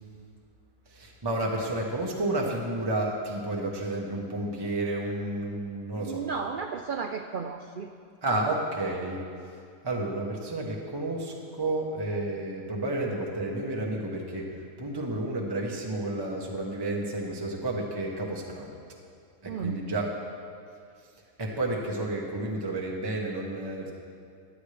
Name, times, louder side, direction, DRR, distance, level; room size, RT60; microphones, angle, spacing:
voice 1, 0.9-6.2 8.2-9.2 9.8-14.4 14.8-18.7 19.4-20.1 21.4-23.9, right 2 dB, 20° right, -1 dB, 1.0 m, -31 dB
voice 2, 6.0-7.9 19.5-19.8, right 6 dB, 75° right, 5 dB, 0.4 m, -33 dB
17.0 x 11.0 x 3.3 m, 2.3 s
omnidirectional pair, 1.5 m